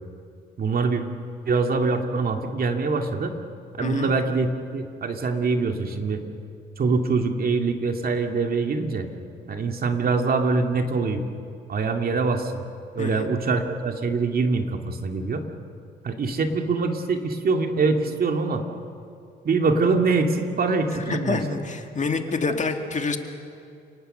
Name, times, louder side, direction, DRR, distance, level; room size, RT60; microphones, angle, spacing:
voice 1, 0.6-1.0 1.5-3.3 3.8-6.2 6.8-9.1 9.5-11.2 11.7-12.6 13.0-15.4 16.0-18.6 19.4-21.4, right 4 dB, 50° right, 4 dB, 2.3 m, -24 dB
voice 2, 3.8-4.1 13.0-13.3 21.1-23.2, left 4 dB, 40° left, 5 dB, 2.0 m, -27 dB
29.5 x 19.0 x 6.8 m, 2.5 s
cardioid pair, 90°, 20 cm